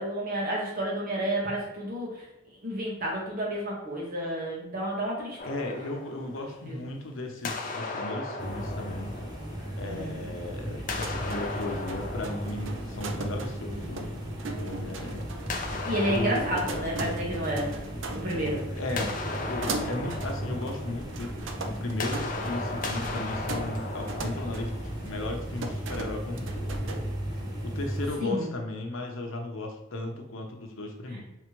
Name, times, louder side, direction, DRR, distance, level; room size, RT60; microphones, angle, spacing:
voice 1, 0.0-2.2 2.6-5.4 6.7-6.8 9.8-10.1 15.9-17.7 18.2-18.7 28.2-28.5, right 1 dB, 45° right, -3 dB, 1.5 m, -30 dB
voice 2, 5.4-9.2 9.8-14.2 14.6-15.3 16.1-16.5 18.7-26.7 27.6-31.2, left 2 dB, 85° left, 2 dB, 0.8 m, -35 dB
sound 1, 5.4-7.0 7.4-10.2 10.8-13.7 15.5-18.3 18.6-25.3, left 3 dB, 40° left, 0.6 m, -37 dB
sound 2, 8.4-28.1, right 1 dB, 20° right, 0.8 m, -36 dB
sound 3, 11.0-27.0, right 2 dB, 70° right, 0.5 m, -39 dB
4.7 x 3.3 x 3.1 m, 0.88 s
head